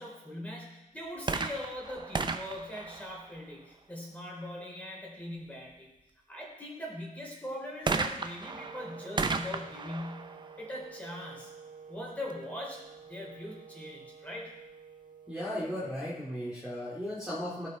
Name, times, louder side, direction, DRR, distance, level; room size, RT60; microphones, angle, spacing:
voice 1, 0.0-5.9 6.3-11.5 11.9-12.8 13.1-14.5, left 1 dB, 10° left, -3 dB, 3.4 m, -41 dB
sound 1, 1.2-3.8 7.9-11.5 12.3-12.4, right 4 dB, 30° right, 0.6 m, -35 dB
sound 2, 8.4-16.5, right 5 dB, 85° right, 1.5 m, -51 dB
voice 2, 15.3-17.7, equal, 5° right, -9 dB, 2.4 m, -36 dB
17.0 x 5.8 x 4.3 m, 0.95 s
wide cardioid pair, 150°, 14 cm